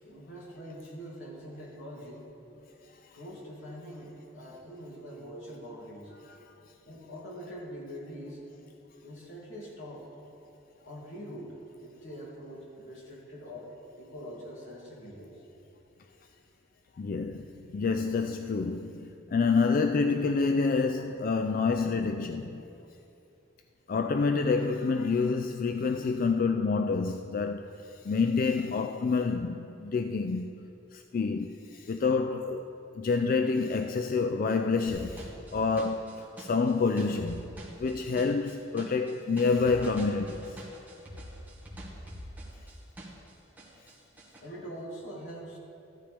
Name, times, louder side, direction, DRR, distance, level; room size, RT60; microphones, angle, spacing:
voice 1, 0.0-2.3 3.1-6.1 6.6-8.4 9.0-10.1 10.8-13.7 14.0-15.4 44.4-45.6, equal, 80° left, 2.7 m, -44 dB
voice 2, 17.0-22.6 23.9-27.7 28.0-30.5 30.9-35.2 35.5-37.4 37.8-40.4, left 4 dB, 45° left, 0.3 m, -28 dB
sound 1, 34.9-43.3 43.6-44.4, equal, 10° right, 1.7 m, -44 dB
14.0 x 11.5 x 3.5 m
head